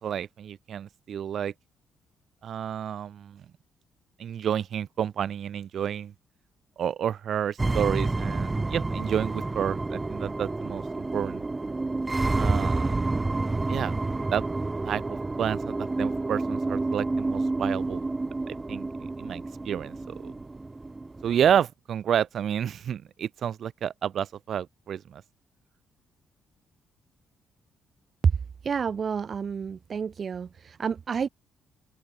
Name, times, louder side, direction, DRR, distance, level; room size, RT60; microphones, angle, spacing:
voice 1, 0.0-1.5 2.4-3.4 4.2-6.1 6.8-11.4 12.3-13.0 13.7-14.0 14.3-14.4 14.8-15.0 15.4-18.0 18.5-18.9 19.2-20.3 21.2-25.2, right 9 dB, 60° right, 3.3 m, -30 dB
sound 1, 7.6-21.6, right 3 dB, 20° right, 3.4 m, -29 dB
voice 2, 28.6-31.3, right 6 dB, 45° right, 2.2 m, -28 dB
open air
cardioid pair, 90°, 0 cm